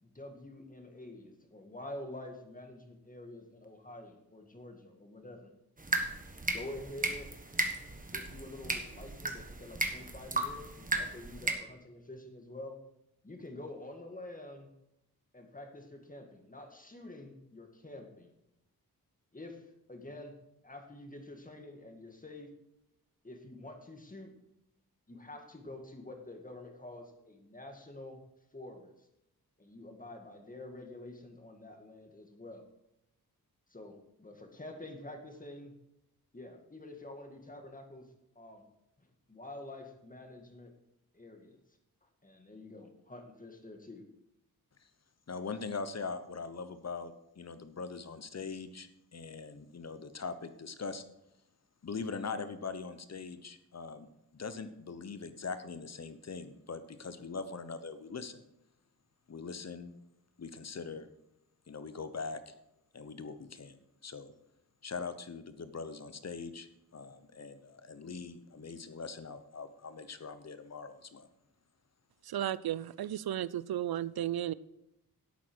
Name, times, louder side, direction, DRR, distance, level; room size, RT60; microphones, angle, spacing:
voice 1, 0.0-5.5 6.5-7.3 8.0-12.8 13.2-14.7 15.3-18.3 19.3-19.6 19.9-20.3 20.6-22.5 23.2-24.3 25.1-28.2 28.5-29.1 29.6-32.6 33.7-35.7 36.3-38.1 38.4-38.6 39.0-40.7 41.1-41.6 42.0-44.0, left 1 dB, 20° left, 4 dB, 2.1 m, -48 dB
sound 1, 5.8-11.5, right 2 dB, 20° right, 1.4 m, -35 dB
voice 2, 45.3-51.0 51.8-58.4 59.3-59.9 60.4-61.1 61.7-62.5 62.9-64.3 64.8-66.7 66.9-71.3, left 4 dB, 45° left, 11 dB, 1.0 m, -42 dB
voice 3, 72.2-74.5, right 11 dB, 75° right, 19 dB, 0.5 m, -34 dB
11.5 x 8.4 x 4.7 m, 0.84 s
wide cardioid pair, 85°, 37 cm